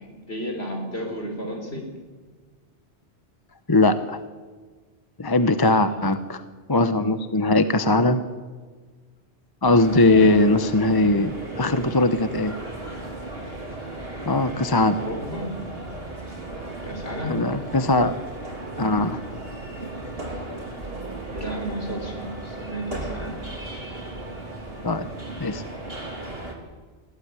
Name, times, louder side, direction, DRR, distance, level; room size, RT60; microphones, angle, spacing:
voice 1, 0.1-1.9 5.7-6.1 15.0-15.5 16.8-17.4 21.3-23.4, equal, 65° left, 2 dB, 5.0 m, -33 dB
voice 2, 3.7-4.2 5.2-6.4 6.7-8.2 9.6-12.5 14.3-15.0 17.3-18.2 18.8-19.2 24.8-25.0 25.4-25.6, left 2 dB, 20° left, 10 dB, 0.9 m, -20 dB
sound 1, 9.6-26.5, right 2 dB, 60° right, 4.4 m, -36 dB
21.0 x 15.5 x 9.7 m, 1.4 s
omnidirectional pair, 1.2 m